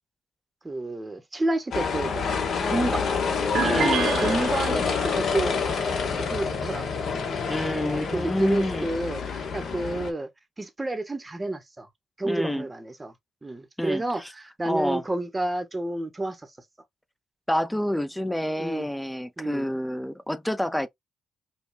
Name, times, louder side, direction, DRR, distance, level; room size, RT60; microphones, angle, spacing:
voice 1, 0.6-3.1 4.2-7.2 7.7-10.3 10.6-11.9 12.2-13.1 13.4-16.4 18.6-18.9 19.4-19.7, right 2 dB, 20° right, 0.8 m, -30 dB
sound 1, 1.7-10.1, left 5 dB, 55° left, 1.1 m, -27 dB
sound 2, 3.5-5.3, right 8 dB, 70° right, 0.8 m, -29 dB
voice 2, 3.6-4.1 7.5-8.9 12.2-12.7 13.8-14.3 14.7-15.0 17.5-20.9, left 1 dB, 5° left, 0.4 m, -28 dB
5.2 x 2.2 x 2.3 m
cardioid pair, 90°, 0 cm